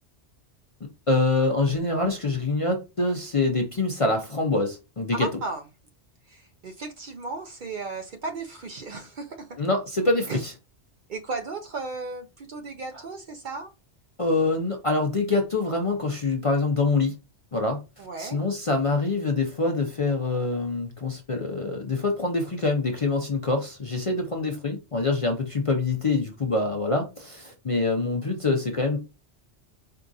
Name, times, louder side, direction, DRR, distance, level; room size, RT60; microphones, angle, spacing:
voice 1, 1.1-5.3 9.6-10.5 12.9-13.0 14.2-17.1 17.5-29.0, left 3 dB, 40° left, 0.5 m, -25 dB
voice 2, 5.2-5.6 6.3-9.5 10.3-10.4 11.1-13.7 18.0-18.4, right 3 dB, 55° right, 0.6 m, -35 dB
4.6 x 2.4 x 2.5 m
omnidirectional pair, 1.2 m